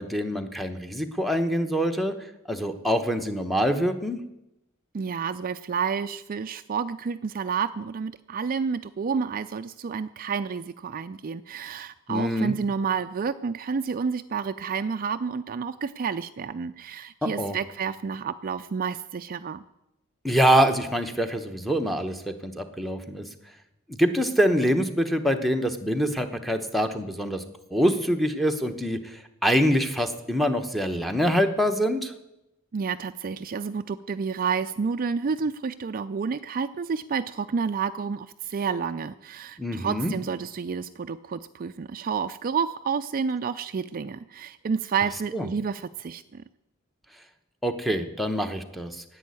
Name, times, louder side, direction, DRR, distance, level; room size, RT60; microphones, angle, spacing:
voice 1, 0.0-2.1 2.5-4.2 12.1-12.5 17.2-17.6 20.2-23.3 23.9-27.4 27.7-32.1 39.6-40.2 45.3-45.5 47.6-49.0, equal, ahead, 5 dB, 1.0 m, -25 dB
voice 2, 4.9-19.6 32.7-46.4, right 6 dB, 40° right, 11 dB, 0.4 m, -30 dB
11.0 x 8.5 x 9.6 m, 0.88 s
head